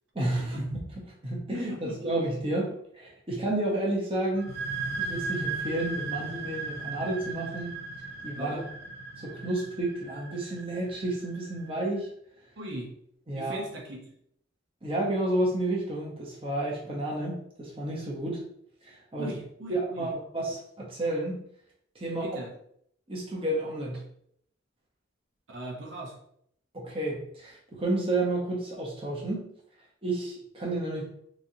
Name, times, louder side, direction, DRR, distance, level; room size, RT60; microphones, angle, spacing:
voice 1, 0.1-0.8 1.2-4.5 5.0-7.8 8.2-8.7 9.2-12.1 13.3-13.6 14.8-18.4 18.8-19.3 19.7-21.4 21.9-22.3 23.1-24.0 26.7-29.5 30.0-31.1, right 1 dB, 30° right, -3 dB, 0.8 m, -31 dB
sound 1, 4.3-11.8, right 4 dB, 50° right, 0.4 m, -37 dB
voice 2, 8.3-8.7 12.6-12.9 13.3-14.1 19.2-20.1 22.2-22.5 25.5-26.1, right 1 dB, 70° right, -1 dB, 0.8 m, -39 dB
3.8 x 3.1 x 2.7 m, 0.68 s
head